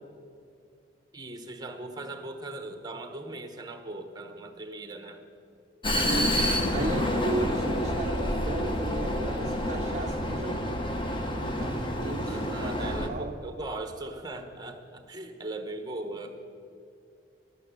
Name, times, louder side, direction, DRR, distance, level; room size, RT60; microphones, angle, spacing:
voice 1, 1.1-5.2 12.3-16.4, right 2 dB, 20° right, 7 dB, 0.9 m, -39 dB
Vehicle, 5.8-13.1, equal, 25° left, 0.9 m, -28 dB
voice 2, 6.0-6.4 6.7-10.8 11.6-13.4, right 2 dB, 35° right, 3 dB, 0.5 m, -35 dB
11.0 x 8.4 x 8.2 m, 2.4 s
head